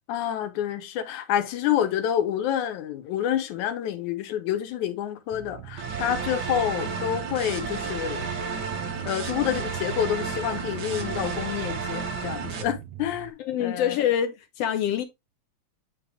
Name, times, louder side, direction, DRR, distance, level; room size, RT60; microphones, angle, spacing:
voice 1, 0.1-8.3 9.1-14.0, left 10 dB, 90° left, 2.5 m, -28 dB
sound 1, 5.3-13.3, right 14 dB, 75° right, 2.1 m, -42 dB
sound 2, 5.8-12.6, right 5 dB, 55° right, 1.2 m, -32 dB
voice 2, 13.4-15.0, left 10 dB, 70° left, 1.6 m, -25 dB
9.6 x 3.4 x 3.5 m
omnidirectional pair, 3.3 m